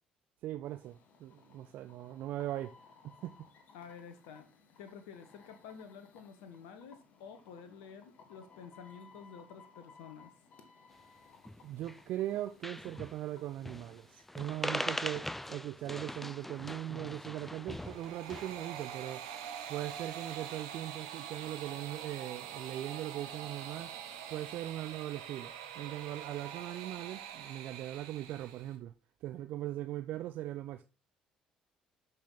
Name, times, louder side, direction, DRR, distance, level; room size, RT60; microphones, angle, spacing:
voice 1, 0.4-2.7 3.0-3.5 11.6-19.3 19.7-24.0 24.3-28.9 29.2-30.8, right 14 dB, 55° right, 0.6 m, -40 dB
sound 1, 0.6-14.2, left 4 dB, 50° left, 1.9 m, -61 dB
voice 2, 3.7-4.5 4.8-10.3, left 6 dB, 65° left, 1.2 m, -50 dB
sound 2, 11.5-12.0 12.3-12.4 12.6-13.2 13.7-14.0 14.3-18.7, left 1 dB, 5° left, 0.6 m, -41 dB
sound 3, 17.6-28.7, right 9 dB, 75° right, 1.8 m, -45 dB
12.5 x 5.8 x 3.8 m
figure-of-eight pair, 50°, 3 cm